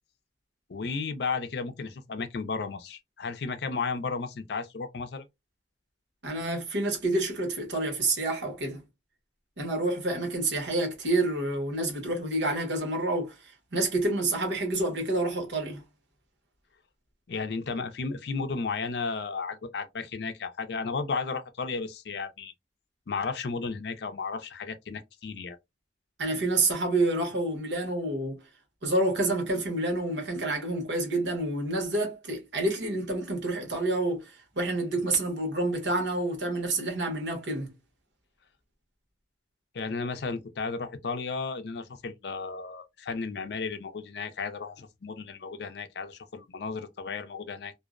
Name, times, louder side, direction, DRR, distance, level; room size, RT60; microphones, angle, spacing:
voice 1, 0.7-5.3 17.3-22.5 23.1-25.6 39.7-47.7, left 4 dB, 65° left, 0.5 m, -34 dB
voice 2, 6.2-8.8 9.6-15.8 26.2-28.4 28.8-37.7, right 2 dB, 85° right, 1.1 m, -28 dB
2.5 x 2.0 x 2.4 m
head